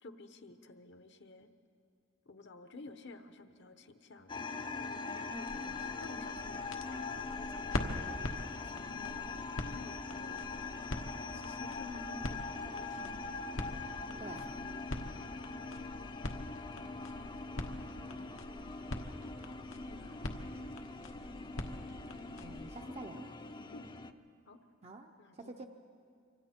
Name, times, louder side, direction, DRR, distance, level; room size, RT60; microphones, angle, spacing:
voice 1, 0.0-1.5 2.2-9.2 9.6-10.4 11.3-13.1 19.5-20.2 23.7-23.9 24.5-24.6 25.2-25.7, left 2 dB, 60° left, 9 dB, 1.0 m, -53 dB
sound 1, 4.3-24.1, left 4 dB, 25° left, 0.6 m, -42 dB
sound 2, 5.3-22.8, left 1 dB, 85° left, 1.3 m, -44 dB
voice 2, 14.2-14.8 22.4-23.3 24.8-25.6, right 2 dB, 35° right, 3 dB, 0.7 m, -48 dB
26.0 x 24.5 x 4.4 m, 2.4 s
head